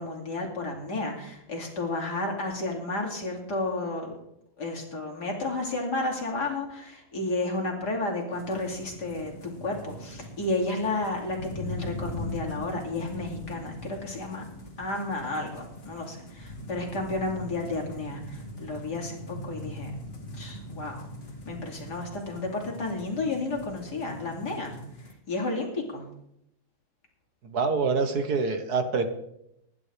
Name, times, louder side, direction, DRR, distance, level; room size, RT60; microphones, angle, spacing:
voice 1, 0.0-4.1 4.6-9.3 9.6-14.4 14.8-19.9 20.3-21.0 21.4-24.8 25.3-26.0, left 2 dB, 50° left, 0 dB, 3.3 m, -32 dB
sound 1, 8.3-25.1, left 1 dB, 30° left, 2.0 m, -41 dB
voice 2, 27.4-29.1, right 4 dB, 55° right, 7 dB, 1.7 m, -26 dB
24.0 x 11.5 x 3.5 m, 0.78 s
omnidirectional pair, 2.2 m